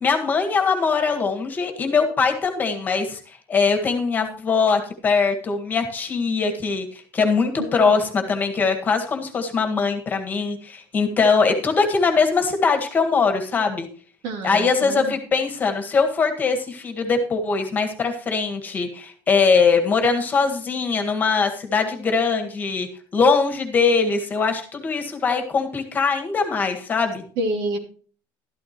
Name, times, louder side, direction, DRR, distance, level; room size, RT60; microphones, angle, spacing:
voice 1, 0.0-13.9 14.4-22.9 23.1-27.2, left 5 dB, 20° left, 5 dB, 1.7 m, -21 dB
voice 2, 14.2-15.2 27.4-27.8, right 2 dB, 70° right, 3 dB, 2.9 m, -27 dB
12.5 x 12.5 x 3.0 m, 0.41 s
cardioid pair, 170°, 8 cm